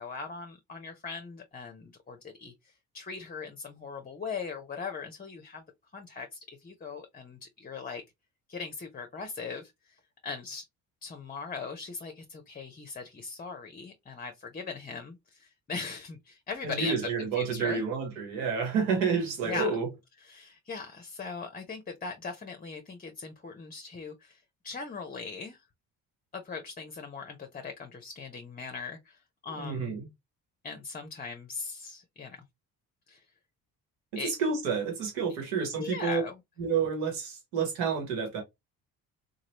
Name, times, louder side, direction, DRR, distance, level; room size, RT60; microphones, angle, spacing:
voice 1, 0.0-5.6 5.9-8.0 8.5-9.9 10.2-10.6 11.0-17.8 19.4-19.7 20.3-25.6 26.3-29.2 29.4-30.0 30.6-32.4 33.1-33.2 34.1-34.3 35.8-36.3, left 4 dB, 20° left, 0.6 m, -39 dB
voice 2, 16.6-19.9 29.6-30.1 34.1-36.2 36.6-38.4, right 5 dB, 80° right, 1.3 m, -29 dB
3.0 x 2.4 x 2.8 m
hypercardioid pair, 55°, 42 cm